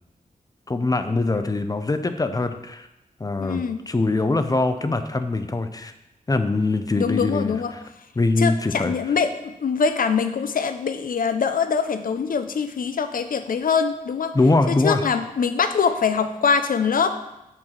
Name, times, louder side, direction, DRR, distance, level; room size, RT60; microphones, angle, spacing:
voice 1, 0.7-2.9 3.2-5.9 6.3-7.8 8.2-8.9 14.3-15.0, left 3 dB, 25° left, 9 dB, 0.6 m, -23 dB
voice 2, 3.4-3.8 7.0-7.7 8.4-14.3 14.7-17.2, left 6 dB, 70° left, 9 dB, 0.6 m, -23 dB
6.1 x 4.5 x 6.4 m, 0.91 s
wide cardioid pair, 100°, 15 cm